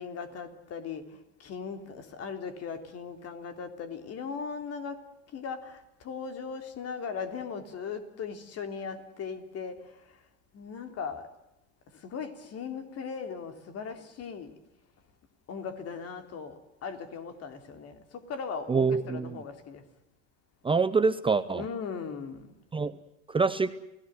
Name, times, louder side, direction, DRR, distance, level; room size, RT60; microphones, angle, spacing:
voice 1, 0.0-10.2 10.5-11.3 11.9-14.5 15.5-19.8 21.5-22.5, left 6 dB, 45° left, 3.4 m, -38 dB
voice 2, 18.7-19.4 20.6-21.6 22.7-22.9 23.3-23.7, right 4 dB, 15° right, 0.8 m, -25 dB
29.0 x 17.0 x 8.0 m
supercardioid pair, 100°, 36 cm